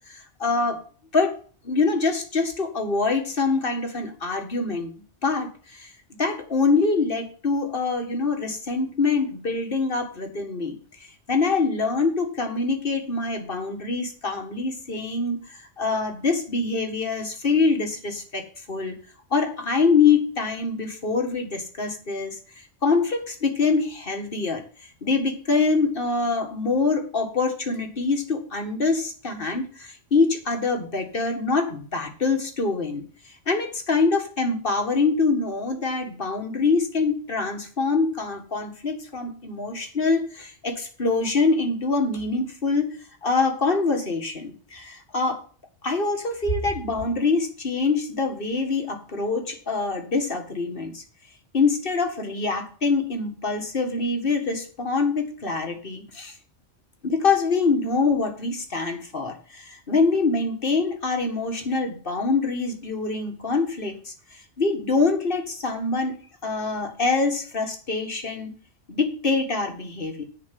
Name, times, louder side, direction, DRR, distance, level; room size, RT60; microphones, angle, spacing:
voice 1, 0.1-0.8 1.1-1.4 1.6-4.9 5.2-5.9 6.2-10.8 11.3-19.0 19.3-24.6 25.0-33.0 33.5-45.4 45.8-51.0 51.5-56.3 57.0-68.5 68.9-70.2, left 4 dB, 50° left, 4 dB, 1.9 m, -25 dB
10.5 x 5.1 x 7.6 m, 0.43 s
omnidirectional pair, 1.2 m